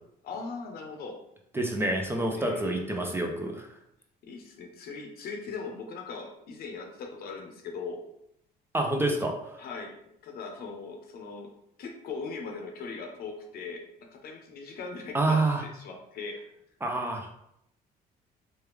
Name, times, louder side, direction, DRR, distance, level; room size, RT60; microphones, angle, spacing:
voice 1, 0.2-1.2 2.3-2.8 4.2-8.0 9.6-11.5 11.8-16.4, left 4 dB, 65° left, 3 dB, 0.7 m, -40 dB
voice 2, 1.5-3.7 8.7-9.6 15.1-15.6 16.8-17.3, right 2 dB, 15° right, 2 dB, 0.5 m, -28 dB
3.1 x 2.3 x 3.3 m, 0.77 s
cardioid pair, 110°, 17 cm